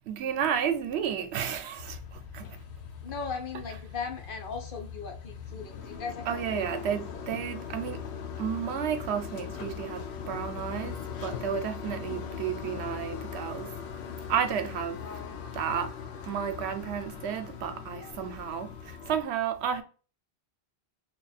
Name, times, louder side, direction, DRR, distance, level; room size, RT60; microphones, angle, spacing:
voice 1, 0.1-2.6 6.3-8.0 8.4-13.8 14.3-15.0 15.5-15.9 16.2-19.8, right 8 dB, 85° right, 0.8 m, -32 dB
sound 1, 1.8-19.2, left 7 dB, 90° left, 0.8 m, -40 dB
voice 2, 3.0-7.2 12.1-12.4 15.0-15.5, left 5 dB, 60° left, 0.8 m, -39 dB
2.9 x 2.3 x 3.9 m
omnidirectional pair, 1.1 m